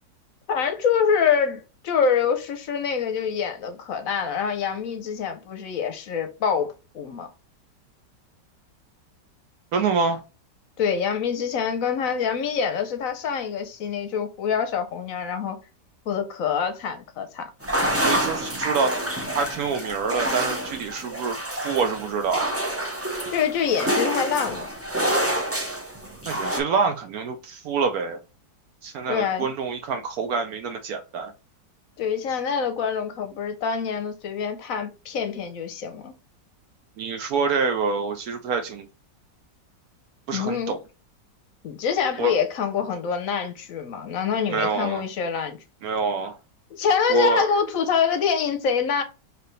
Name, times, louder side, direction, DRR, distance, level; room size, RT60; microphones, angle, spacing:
voice 1, 0.5-7.3 10.8-15.6 16.1-17.5 23.3-24.7 29.1-29.5 32.0-36.1 40.3-40.8 41.6-45.6 46.7-49.0, left 6 dB, 60° left, 1.0 m, -25 dB
voice 2, 9.7-10.2 18.0-18.9 19.3-21.4 21.6-22.4 26.3-28.2 28.8-31.3 37.0-38.9 40.3-40.8 42.2-42.3 44.5-45.0 45.8-46.4 47.1-47.5, right 5 dB, 70° right, 0.9 m, -26 dB
sound 1, 17.6-26.6, right 1 dB, 20° right, 0.3 m, -27 dB
4.7 x 3.3 x 3.1 m
omnidirectional pair, 1.9 m